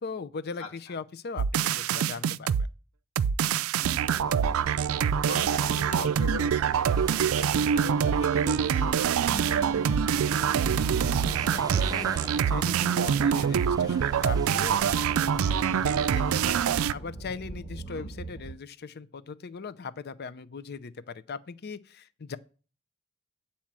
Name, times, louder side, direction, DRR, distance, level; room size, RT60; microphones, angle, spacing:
voice 1, 0.0-2.5 11.2-14.8 15.4-22.4, left 5 dB, 50° left, 0.5 m, -39 dB
voice 2, 0.6-0.9 3.8-4.6 5.3-9.7 17.9-18.1, left 2 dB, 75° left, 2.0 m, -41 dB
sound 1, 1.4-2.7 3.2-16.9, right 7 dB, 75° right, 0.4 m, -25 dB
sound 2, 4.1-16.4, right 3 dB, 20° right, 0.7 m, -43 dB
sound 3, 13.8-18.5, equal, 30° left, 1.3 m, -44 dB
8.9 x 4.3 x 7.3 m
head